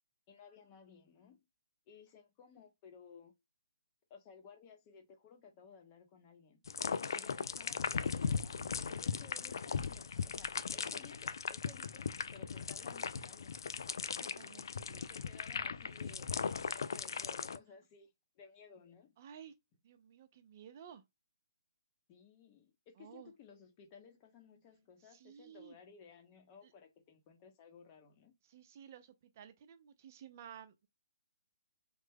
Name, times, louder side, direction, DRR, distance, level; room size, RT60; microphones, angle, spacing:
voice 1, 0.3-1.4 1.9-3.3 4.1-6.6 7.1-13.6 15.0-18.1 18.4-19.1 22.1-28.3, left 6 dB, 25° left, 0.8 m, -58 dB
sound 1, 6.7-17.6, left 6 dB, 70° left, 0.3 m, -38 dB
voice 2, 14.2-15.2 19.2-19.5 19.8-21.0 23.0-23.3 25.0-25.8 26.6-26.7 28.4-30.9, right 9 dB, 40° right, 0.5 m, -54 dB
3.3 x 2.1 x 3.4 m
hypercardioid pair, 155°, 2 cm